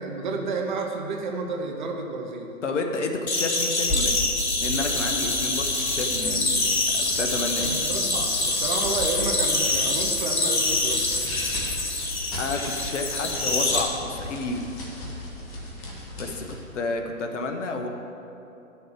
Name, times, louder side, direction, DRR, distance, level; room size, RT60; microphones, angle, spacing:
voice 1, 0.0-2.5 7.6-11.0, right 3 dB, 35° right, 3 dB, 0.9 m, -31 dB
voice 2, 2.6-4.2 4.6-7.7 12.4-14.7 16.2-17.9, left 3 dB, 60° left, 4 dB, 1.1 m, -30 dB
sound 1, 3.3-13.8, left 2 dB, 80° left, 2.0 m, -25 dB
sound 2, 3.8-16.7, left 1 dB, 10° left, 0.6 m, -36 dB
12.0 x 6.4 x 4.6 m, 2.9 s
figure-of-eight pair, 135°, 42 cm